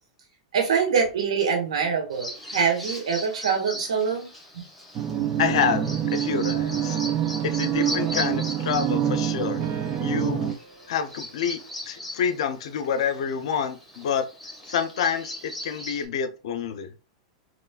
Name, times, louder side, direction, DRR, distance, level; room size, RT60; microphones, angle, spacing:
voice 1, 0.5-4.3 4.5-4.6, right 6 dB, 85° right, 1.6 m, -24 dB
Bird vocalization bird call bird song, 2.1-16.0, left 1 dB, 5° left, 1.6 m, -39 dB
sound 1, 4.9-10.5, right 10 dB, 30° right, 0.5 m, -26 dB
voice 2, 5.4-7.0 7.4-9.6 10.0-10.6 10.9-11.6 11.9-14.3 14.7-16.9, left 7 dB, 75° left, 0.6 m, -27 dB
sound 2, 6.1-11.7, right 5 dB, 55° right, 0.9 m, -43 dB
3.8 x 3.0 x 2.3 m
hypercardioid pair, 120°, 3 cm